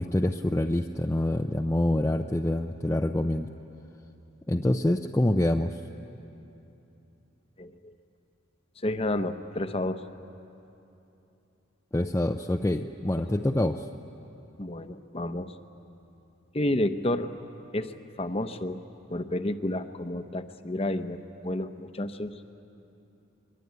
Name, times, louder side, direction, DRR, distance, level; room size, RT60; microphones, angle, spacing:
voice 1, 0.0-3.5 4.5-5.7 11.9-13.8, left 1 dB, 15° left, 3 dB, 0.5 m, -26 dB
voice 2, 8.8-10.0 14.6-15.5 16.5-17.3 17.7-18.8 19.1-22.3, left 1 dB, 30° left, 9 dB, 0.9 m, -30 dB
23.5 x 23.0 x 9.5 m, 2.9 s
head